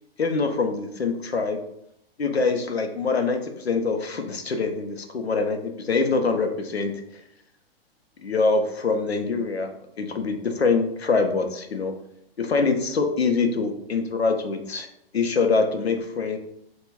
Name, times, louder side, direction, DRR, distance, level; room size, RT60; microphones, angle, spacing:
voice 1, 0.2-1.6 2.2-6.9 8.2-11.9 12.4-14.9 15.1-16.4, left 4 dB, 90° left, 6 dB, 0.5 m, -24 dB
2.2 x 2.1 x 3.4 m, 0.76 s
figure-of-eight pair, 115°, 31 cm